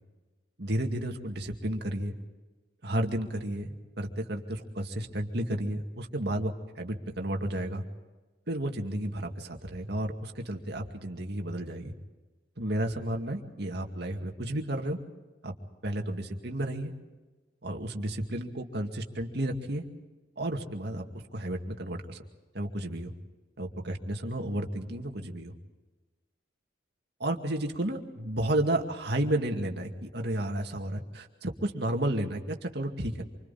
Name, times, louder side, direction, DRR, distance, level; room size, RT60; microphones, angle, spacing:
voice 1, 0.6-2.1 2.8-7.8 8.5-11.9 12.6-15.0 15.4-15.5 15.8-16.9 17.6-19.8 20.4-21.0 21.3-22.2 22.5-23.1 23.6-25.5 27.2-33.2, right 1 dB, 60° right, 3 dB, 2.3 m, -32 dB
28.0 x 25.0 x 4.3 m, 1.2 s
head